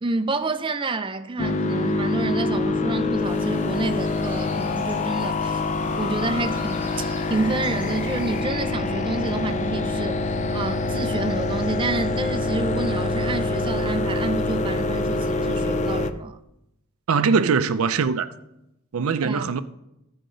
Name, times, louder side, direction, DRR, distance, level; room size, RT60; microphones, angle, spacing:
voice 1, 0.0-5.6 6.0-10.2 10.5-16.4 19.2-19.6, right 3 dB, 25° right, 0.5 m, -28 dB
sound 1, 1.4-16.1, left 2 dB, 35° left, 0.4 m, -25 dB
sound 2, 3.2-8.4, left 1 dB, 10° left, 3.7 m, -45 dB
voice 2, 17.1-18.3 18.9-19.6, right 5 dB, 80° right, 0.5 m, -21 dB
15.0 x 5.0 x 3.9 m
head